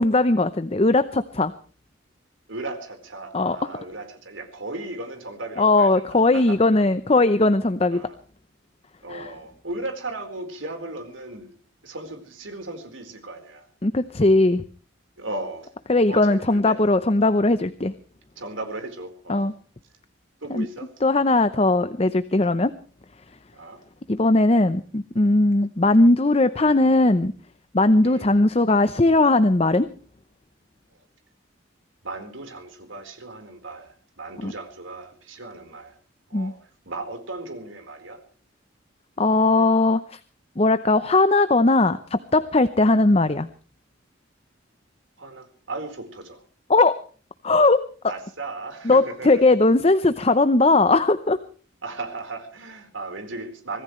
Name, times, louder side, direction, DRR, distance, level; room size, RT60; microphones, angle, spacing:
voice 1, 0.0-1.5 3.3-3.6 5.6-8.1 9.1-9.3 13.8-14.6 15.9-17.9 19.3-19.5 20.5-20.7 21.0-22.7 24.1-27.3 27.7-29.9 34.4-34.5 36.3-36.5 39.2-40.2 40.6-43.5 46.7-47.0 47.4-47.8 48.8-51.4, left 2 dB, 30° left, 12 dB, 0.7 m, -19 dB
voice 2, 2.5-6.6 7.9-8.2 9.0-11.5 11.8-13.7 15.2-15.7 16.1-16.8 18.4-19.5 20.4-20.9 23.5-23.8 28.0-28.3 32.0-36.0 36.3-36.6 36.8-38.2 42.8-43.0 45.2-46.4 48.1-49.4 51.8-53.8, right 2 dB, 85° right, 6 dB, 4.3 m, -36 dB
25.0 x 17.5 x 3.2 m, 0.40 s
head